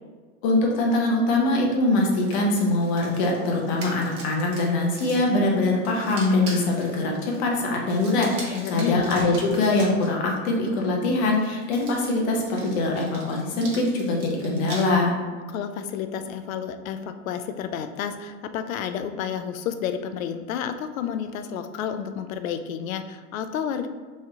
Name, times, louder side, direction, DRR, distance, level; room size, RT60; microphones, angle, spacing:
voice 1, 0.4-15.2, left 2 dB, 50° left, -1 dB, 1.0 m, -23 dB
sound 1, 2.0-10.1 11.1-14.8, right 3 dB, 30° right, 1.0 m, -42 dB
voice 2, 8.5-9.1 15.5-23.9, left 8 dB, 70° left, 9 dB, 0.5 m, -30 dB
3.2 x 2.7 x 3.6 m, 1.4 s
hypercardioid pair, 120°, 43 cm